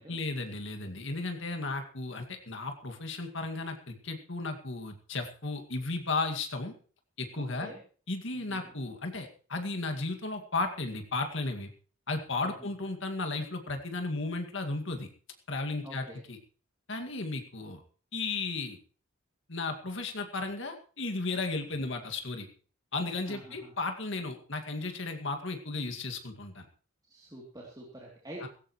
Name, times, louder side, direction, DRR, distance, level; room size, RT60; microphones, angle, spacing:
voice 1, 0.1-6.7 7.2-7.7 8.1-11.7 12.1-15.1 15.5-16.4 16.9-17.8 18.1-18.8 19.5-22.5 22.9-26.7 28.4-28.5, left 3 dB, 60° left, 5 dB, 2.2 m, -34 dB
voice 2, 7.4-7.8 8.3-8.7 12.4-12.7 15.8-16.2 23.3-23.7 27.0-28.5, right 1 dB, 20° right, -4 dB, 3.0 m, -47 dB
17.5 x 16.0 x 3.1 m, 0.41 s
head